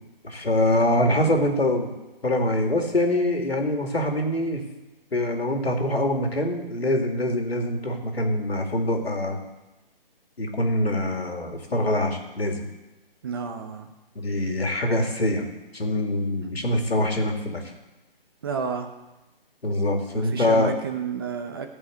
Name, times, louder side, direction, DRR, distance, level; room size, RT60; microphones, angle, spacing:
voice 1, 0.2-1.9 2.2-4.6 5.1-9.4 10.4-12.7 14.2-15.5 15.7-17.6 19.6-20.7, left 1 dB, 85° left, 2 dB, 2.5 m, -24 dB
voice 2, 13.2-13.9 18.4-18.9 20.1-21.7, right 6 dB, 25° right, 6 dB, 0.7 m, -31 dB
14.0 x 5.2 x 7.8 m, 1.0 s
figure-of-eight pair, 150°, 30 cm